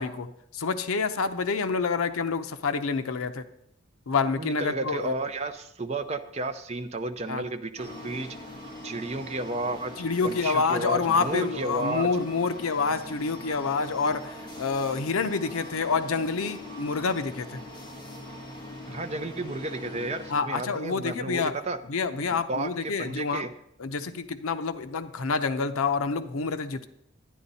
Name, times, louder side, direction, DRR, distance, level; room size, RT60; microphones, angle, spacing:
voice 1, 0.0-3.4 4.1-5.2 7.3-7.4 10.0-17.6 20.3-21.5 21.9-23.4 23.8-26.9, left 4 dB, 80° left, 11 dB, 0.7 m, -28 dB
voice 2, 4.4-8.4 8.8-9.9 10.2-12.1 18.9-21.8 22.3-23.5, right 2 dB, 30° right, 8 dB, 0.6 m, -32 dB
sound 1, 7.8-20.4, left 1 dB, 20° left, 1.5 m, -42 dB
11.5 x 9.8 x 4.1 m, 0.74 s
head